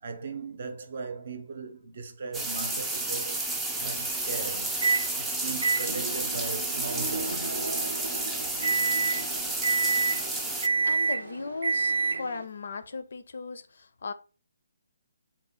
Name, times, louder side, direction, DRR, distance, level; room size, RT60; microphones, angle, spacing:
voice 1, 0.0-3.4 3.8-4.8 5.1-7.5, right 4 dB, 50° right, 0.6 m, -38 dB
sound 1, 2.3-10.7, right 2 dB, 5° right, 0.3 m, -31 dB
Microwave oven, 4.8-5.1 5.6-12.4, right 4 dB, 85° right, 0.7 m, -29 dB
voice 2, 10.8-14.1, left 4 dB, 65° left, 0.4 m, -37 dB
3.8 x 2.2 x 4.0 m
hypercardioid pair, 165°, 0 cm